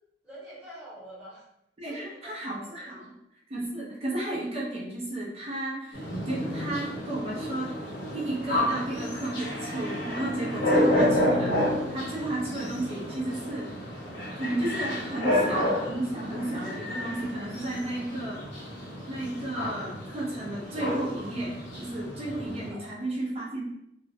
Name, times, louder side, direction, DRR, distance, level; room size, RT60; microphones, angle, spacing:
voice 1, 0.2-1.4 1.8-3.1 22.7-22.9, equal, 5° right, -9 dB, 1.0 m, -47 dB
voice 2, 1.8-3.0 3.5-7.7 8.1-11.6 11.9-13.7 14.4-18.4 19.1-23.6, right 1 dB, 35° right, -4 dB, 0.5 m, -33 dB
sound 1, 5.9-22.7, left 1 dB, 70° left, 0.7 m, -30 dB
2.4 x 2.0 x 2.6 m, 0.82 s
head